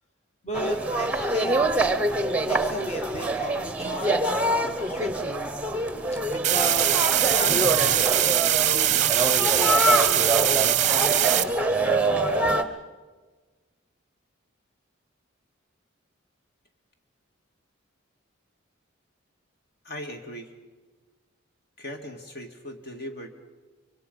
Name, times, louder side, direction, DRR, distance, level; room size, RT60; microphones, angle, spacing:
voice 1, 0.4-1.9 2.4-5.4 6.3-9.2 9.6-10.6, right 1 dB, 30° left, 3 dB, 1.3 m, -36 dB
sound 1, 0.5-12.6, right 1 dB, 5° right, 0.9 m, -25 dB
sound 2, 6.4-11.4, right 12 dB, 35° right, 0.7 m, -22 dB
voice 2, 19.8-20.5 21.8-23.3, equal, 50° left, 5 dB, 2.0 m, -38 dB
25.0 x 23.5 x 5.4 m, 1.3 s
head